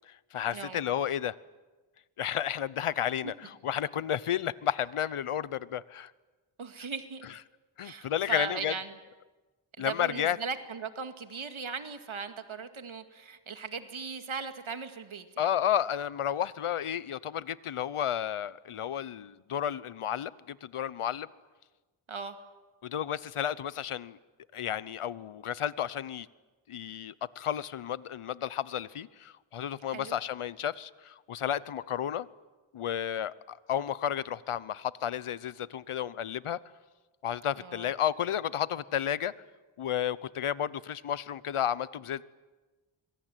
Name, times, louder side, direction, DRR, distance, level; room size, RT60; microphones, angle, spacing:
voice 1, 0.1-1.3 2.2-6.1 7.8-8.7 9.8-10.4 15.4-21.3 22.8-24.2 24.5-26.3 26.7-32.3 32.7-36.6 37.2-39.3 39.8-42.2, left 10 dB, 80° left, 18 dB, 0.9 m, -32 dB
voice 2, 6.6-7.2 7.8-8.9 9.8-15.5 22.1-22.4 29.9-30.2 37.6-37.9, right 5 dB, 70° right, 8 dB, 2.2 m, -38 dB
25.5 x 23.0 x 9.2 m, 1.2 s
wide cardioid pair, 65°, 50 cm